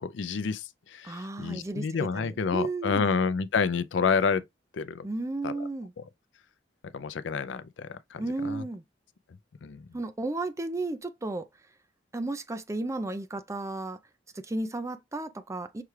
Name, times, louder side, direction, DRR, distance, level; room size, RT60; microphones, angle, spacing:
voice 1, 0.0-4.4 4.7-5.1 5.4-5.5 6.9-8.6 9.6-9.9, left 5 dB, 75° left, 0.4 m, -29 dB
voice 2, 1.0-3.1 5.0-5.9 8.2-8.8 9.9-11.4 12.1-14.0 14.3-15.8, right 2 dB, 15° right, 0.4 m, -33 dB
5.7 x 2.3 x 3.2 m
head